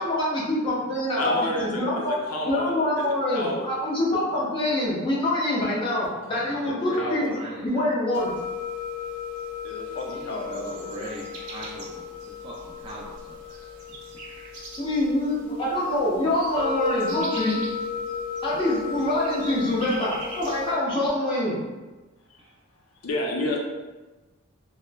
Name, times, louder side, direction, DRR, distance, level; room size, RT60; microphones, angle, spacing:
voice 1, 0.0-2.1 2.4-7.3 7.6-8.3 14.8-17.6 18.4-21.5, left 1 dB, 25° left, -7 dB, 0.7 m, -25 dB
voice 2, 1.2-3.1 3.3-3.7 6.7-7.4 9.6-11.0 13.5-13.7 23.0-23.6, left 1 dB, 90° left, -1 dB, 0.5 m, -31 dB
voice 3, 6.1-7.8 10.0-12.1 12.4-13.4 13.9-14.0 20.5-20.6 22.4-22.5, right 1 dB, 25° right, -6 dB, 0.3 m, -40 dB
sound 1, 8.1-20.7, left 5 dB, 90° right, 0.8 m, -34 dB
3.0 x 2.0 x 2.2 m, 1.2 s
head